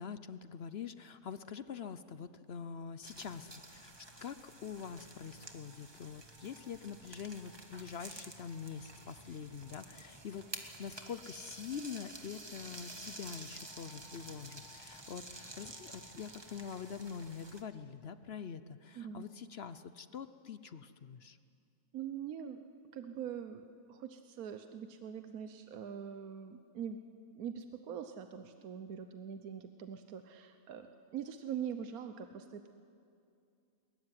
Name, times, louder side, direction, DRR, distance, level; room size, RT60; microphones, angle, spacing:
voice 1, 0.0-3.9 4.2-21.4, left 7 dB, 55° left, 12 dB, 0.8 m, -45 dB
sound 1, 3.0-17.6, right 2 dB, 20° right, 1.5 m, -51 dB
voice 2, 18.9-19.3 21.9-22.6 22.9-27.0 27.3-32.7, right 8 dB, 75° right, 7 dB, 1.3 m, -43 dB
21.0 x 20.5 x 9.8 m, 2.4 s
omnidirectional pair, 1.5 m